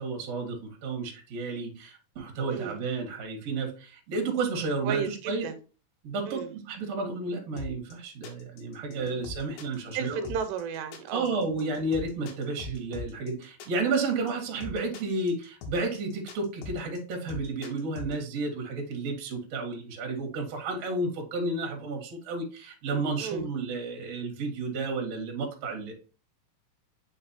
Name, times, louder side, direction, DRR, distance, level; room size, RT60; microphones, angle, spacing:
voice 1, 0.0-5.5 6.0-10.3 11.1-25.9, right 3 dB, 50° right, 2.2 m, -32 dB
voice 2, 4.8-5.6 6.3-6.5 8.9-9.2 9.9-11.3 23.1-23.5, right 7 dB, 85° right, 2.9 m, -33 dB
sound 1, 7.6-18.1, left 3 dB, 65° left, 2.4 m, -41 dB
7.2 x 5.3 x 2.8 m
omnidirectional pair, 4.9 m